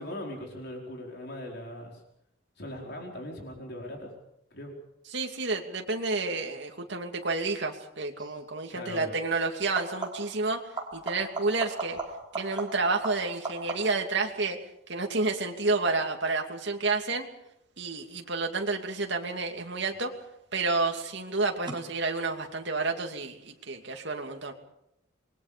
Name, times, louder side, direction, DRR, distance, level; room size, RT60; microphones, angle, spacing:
voice 1, 0.0-2.0 2.6-4.1 4.5-4.7 8.7-9.1, left 1 dB, 55° left, 0 dB, 4.8 m, -39 dB
voice 2, 5.1-10.6 10.9-12.0 12.3-14.6 14.9-17.3 17.8-20.1 20.5-24.5, right 3 dB, 60° right, 3 dB, 2.7 m, -30 dB
sound 1, 8.2-8.4 9.6-10.4 10.7-14.1 19.6-20.1 21.7-21.8, right 3 dB, 25° right, 4.4 m, -37 dB
27.5 x 21.5 x 5.2 m, 0.79 s
head